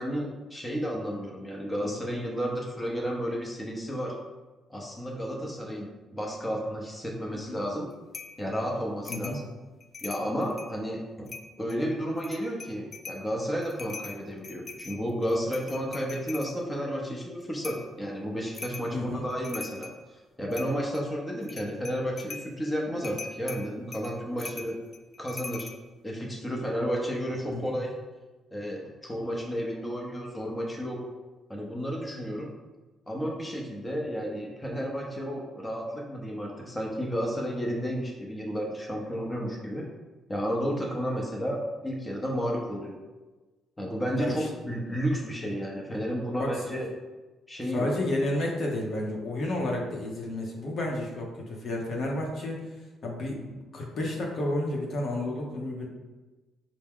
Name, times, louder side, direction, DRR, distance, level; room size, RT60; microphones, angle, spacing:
voice 1, 0.0-4.1 4.7-7.9 8.4-9.4 10.0-11.3 11.6-19.9 20.4-24.8 25.2-25.7 26.0-27.9 28.5-31.0 31.5-32.5 33.1-39.9 40.3-43.0 43.8-46.9 47.5-47.9, equal, 15° left, -2 dB, 0.7 m, -32 dB
sound 1, 8.1-8.4 9.0-9.4 9.8-10.7 11.3-11.8 12.2-13.2 13.6-16.5 17.6-17.9 18.5-18.9 19.3-20.0 20.5-21.0 21.4-22.5 23.0-25.8, left 4 dB, 40° left, 0.3 m, -42 dB
voice 2, 18.9-19.3 27.5-27.7 44.2-44.5 46.4-46.6 47.7-52.6 53.0-55.9, left 1 dB, 60° left, -1 dB, 0.8 m, -31 dB
4.5 x 2.1 x 3.6 m, 1.2 s
cardioid pair, 90°, 0 cm